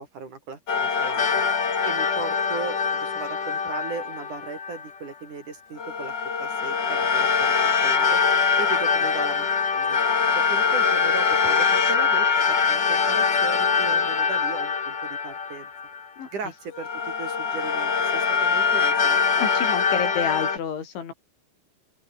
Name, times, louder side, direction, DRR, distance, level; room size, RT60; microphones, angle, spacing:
voice 1, 0.0-1.4 1.8-6.1 6.4-7.5 7.8-8.2 8.6-9.5 9.7-10.0 10.4-15.7 16.3-19.2, right 5 dB, 45° right, 4.8 m, -37 dB
sound 1, 0.7-4.9 5.8-16.2 16.7-20.6, left 5 dB, 35° left, 1.9 m, -23 dB
voice 2, 19.4-21.1, left 7 dB, 80° left, 6.6 m, -29 dB
open air
omnidirectional pair, 5.3 m